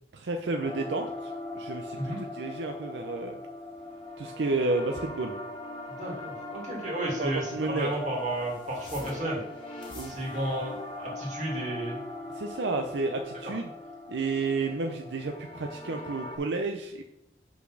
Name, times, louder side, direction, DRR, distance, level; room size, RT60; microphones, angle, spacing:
voice 1, 0.1-2.0 2.4-3.4 4.2-5.3 7.2-7.9 9.9-10.2 12.4-13.7 14.1-17.0, right 3 dB, 85° right, 4 dB, 0.6 m, -31 dB
sound 1, 0.6-16.4, left 2 dB, 25° left, 1.4 m, -41 dB
voice 2, 5.9-9.4 10.1-12.0, right 1 dB, 40° right, -3 dB, 2.3 m, -32 dB
5.8 x 4.0 x 6.2 m, 0.82 s
head